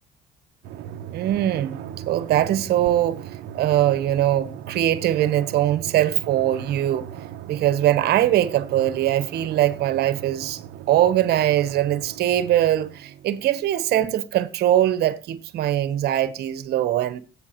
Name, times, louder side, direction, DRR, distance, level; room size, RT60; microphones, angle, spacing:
Drum, 0.6-13.7, right 10 dB, 85° right, 1.0 m, -38 dB
voice 1, 1.1-1.8 2.1-3.2 3.5-7.1 7.5-10.6 10.9-17.2, right 12 dB, 70° right, 1.3 m, -21 dB
15.0 x 9.0 x 3.2 m
cardioid pair, 110°, 17 cm